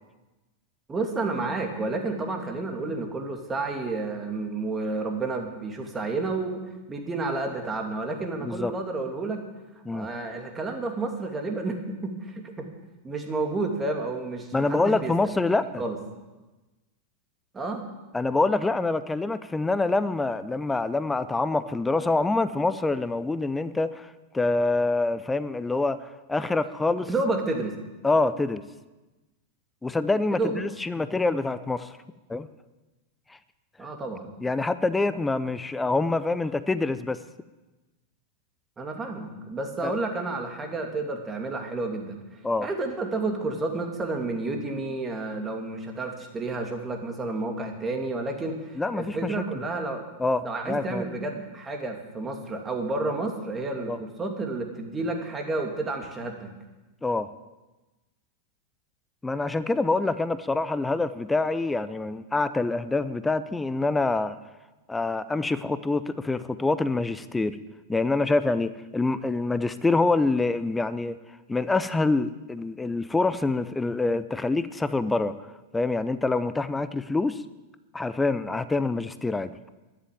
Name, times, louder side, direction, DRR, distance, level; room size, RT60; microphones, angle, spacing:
voice 1, 0.9-6.6 6.9-9.4 9.9-12.7 13.0-15.1 15.8-16.0 17.5-17.8 27.1-27.7 30.3-30.6 33.8-34.3 38.8-42.2 42.6-50.0 50.4-56.5, right 3 dB, 15° right, 3 dB, 2.7 m, -30 dB
voice 2, 8.4-8.7 9.8-10.1 14.5-15.8 18.1-27.1 28.0-28.6 29.8-32.0 32.3-32.5 34.4-37.2 39.8-39.9 42.4-42.7 48.8-49.4 50.2-51.1 53.9-54.0 57.0-57.3 59.2-64.4 64.9-67.6 67.9-71.2 71.5-75.3 75.7-77.4 77.9-79.5, left 3 dB, 10° left, 14 dB, 0.6 m, -26 dB
12.5 x 10.5 x 9.1 m, 1.1 s
figure-of-eight pair, 90°, 0 cm